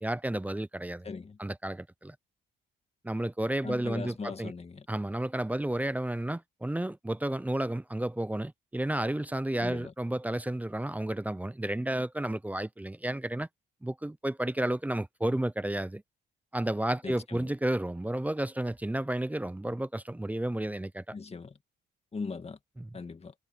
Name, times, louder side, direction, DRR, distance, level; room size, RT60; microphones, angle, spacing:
voice 1, 0.0-1.1 1.4-2.2 3.0-4.5 4.9-13.5 13.8-16.0 16.5-21.2 22.8-23.0, right 1 dB, 10° right, 0.6 m, -32 dB
voice 2, 1.0-1.4 3.6-4.9 9.6-9.9 17.0-17.5 21.1-21.6 22.1-22.6 22.9-23.3, left 4 dB, 30° left, 2.0 m, -39 dB
cardioid pair, 90°, 20 cm